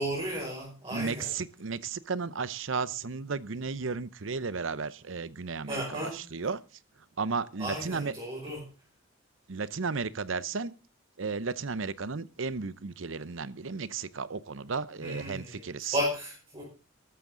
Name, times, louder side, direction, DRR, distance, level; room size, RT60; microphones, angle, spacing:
voice 1, 0.0-1.3 5.7-6.2 7.6-8.7 15.0-15.7 15.9-16.6, equal, 25° right, -4 dB, 5.8 m, -34 dB
voice 2, 0.9-6.6 7.2-8.1 9.5-10.7 11.2-16.0, right 4 dB, 70° right, 17 dB, 0.8 m, -34 dB
13.5 x 13.0 x 3.9 m, 0.33 s
head